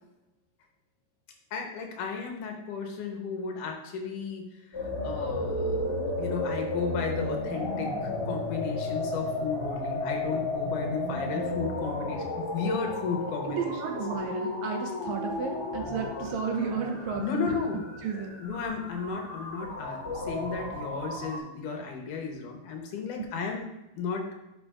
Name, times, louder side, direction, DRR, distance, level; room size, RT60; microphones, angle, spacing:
voice 1, 1.5-14.0 17.2-17.9 18.4-24.3, left 5 dB, 75° left, 3 dB, 2.5 m, -34 dB
sound 1, 4.7-21.4, left 2 dB, 30° left, 2.3 m, -33 dB
voice 2, 13.5-17.5 18.0-18.4, right 6 dB, 75° right, 3 dB, 1.7 m, -32 dB
11.0 x 5.2 x 2.4 m, 0.95 s
omnidirectional pair, 3.8 m